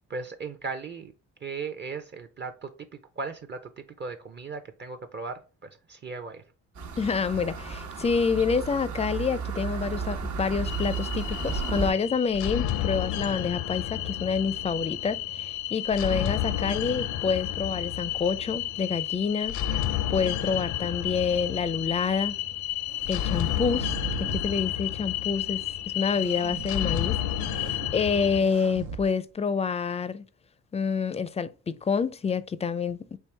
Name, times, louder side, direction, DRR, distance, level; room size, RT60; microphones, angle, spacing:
voice 1, 0.1-1.1 1.4-2.9 3.2-6.4, right 4 dB, 35° right, 0.6 m, -37 dB
sound 1, 6.7-11.9, right 4 dB, 70° right, 1.1 m, -33 dB
voice 2, 7.0-19.8 20.1-22.4 23.1-23.9 24.3-25.6 25.9-30.2 30.7-33.2, left 5 dB, 20° left, 0.4 m, -28 dB
Creepy rhythmic sound loop, 10.6-28.4, left 12 dB, 70° left, 0.5 m, -31 dB
sound 2, 20.9-21.7 22.6-24.5 26.1-26.7 27.2-27.9 28.3-29.0, right 4 dB, 90° right, 0.8 m, -39 dB
4.6 x 3.3 x 3.3 m
cardioid pair, 90°, 30 cm